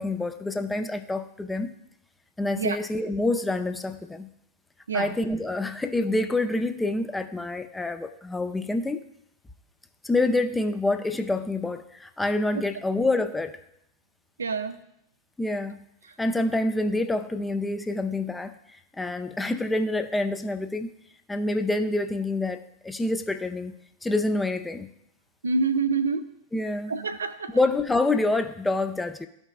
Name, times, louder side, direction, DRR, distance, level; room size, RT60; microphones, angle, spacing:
voice 1, 0.0-1.7 2.4-4.3 4.9-9.0 10.0-13.6 15.4-15.8 16.2-18.5 19.0-20.9 21.3-23.7 24.0-24.9 26.5-27.0 27.5-29.3, left 2 dB, 10° left, 8 dB, 0.4 m, -27 dB
voice 2, 14.4-14.8 25.4-26.2 26.9-27.5, right 4 dB, 70° right, 11 dB, 0.4 m, -26 dB
13.0 x 5.3 x 2.3 m, 0.76 s
figure-of-eight pair, 90°, 0 cm